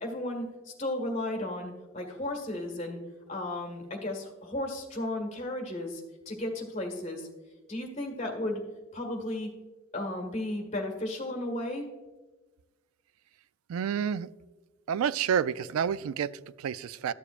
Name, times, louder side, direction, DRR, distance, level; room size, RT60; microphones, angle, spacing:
voice 1, 0.0-3.0 3.3-7.3 7.7-8.6 8.9-9.5 9.9-11.9, left 1 dB, 30° left, 1 dB, 1.6 m, -34 dB
voice 2, 13.7-14.3 14.9-17.1, right 8 dB, 85° right, 17 dB, 0.3 m, -29 dB
12.5 x 6.9 x 2.5 m, 1.2 s
head